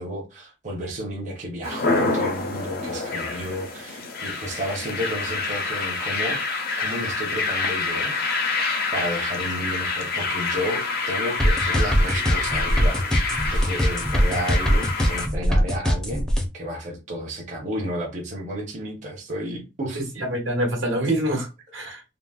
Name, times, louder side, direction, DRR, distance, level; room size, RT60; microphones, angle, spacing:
voice 1, 0.0-6.4 6.8-8.2 8.9-13.0 13.5-16.3 16.5-20.0, equal, 40° right, 0.8 m, -32 dB
sound 1, 1.6-15.3, left 4 dB, 55° left, 0.5 m, -27 dB
sound 2, 11.4-16.4, equal, 5° left, 0.5 m, -21 dB
voice 2, 19.9-22.0, right 1 dB, 80° right, 1.1 m, -26 dB
3.8 x 2.0 x 2.3 m
head